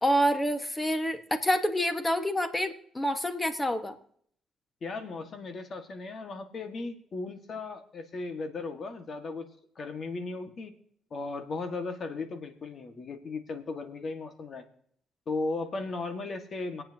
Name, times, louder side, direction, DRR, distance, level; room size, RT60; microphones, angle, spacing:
voice 1, 0.0-4.0, equal, 15° left, 7 dB, 1.5 m, -27 dB
voice 2, 4.8-9.5 9.8-10.7 11.1-14.7 15.3-16.8, left 3 dB, 50° left, 7 dB, 1.8 m, -36 dB
26.0 x 8.8 x 2.9 m, 0.65 s
cardioid pair, 90°, 0 cm